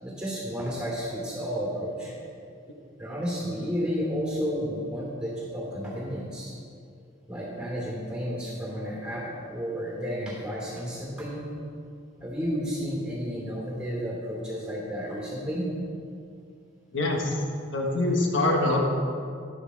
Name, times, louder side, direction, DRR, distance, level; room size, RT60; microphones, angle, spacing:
voice 1, 0.0-2.2 3.0-6.5 7.3-11.5 12.2-15.6, equal, 5° right, -4 dB, 2.7 m, -32 dB
voice 2, 16.9-17.3 17.7-18.8, left 2 dB, 75° left, 0 dB, 1.4 m, -24 dB
11.0 x 10.0 x 4.8 m, 2.4 s
head